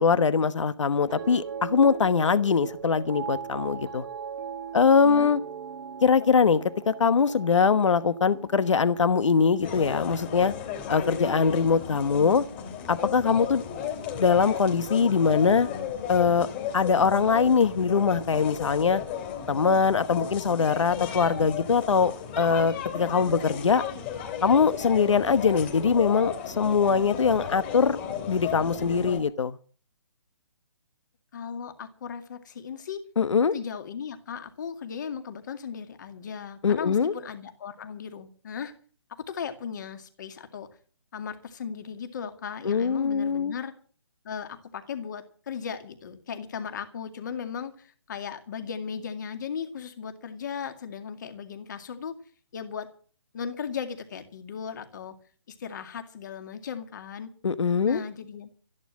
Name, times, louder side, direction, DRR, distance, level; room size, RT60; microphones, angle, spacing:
voice 1, 0.0-4.0 4.7-5.4 6.0-10.5 10.9-12.4 12.9-13.6 14.2-15.7 16.1-16.5 16.7-19.0 19.5-23.8 24.4-28.0 28.3-29.6 33.2-33.5 36.6-37.1 42.6-43.5 57.4-58.0, left 5 dB, 75° left, 1.1 m, -22 dB
sound 1, 1.1-11.5 11.7-12.3, right 7 dB, 50° right, 1.4 m, -40 dB
sound 2, 9.6-29.2, left 8 dB, 20° left, 2.9 m, -35 dB
voice 2, 31.3-33.0 33.5-38.7 39.1-40.7 41.1-43.7 44.2-52.1 52.5-52.9 53.3-55.1 55.6-57.3 57.9-58.5, left 7 dB, 40° left, 2.2 m, -37 dB
13.5 x 11.0 x 7.4 m
hypercardioid pair, 170°, 16 cm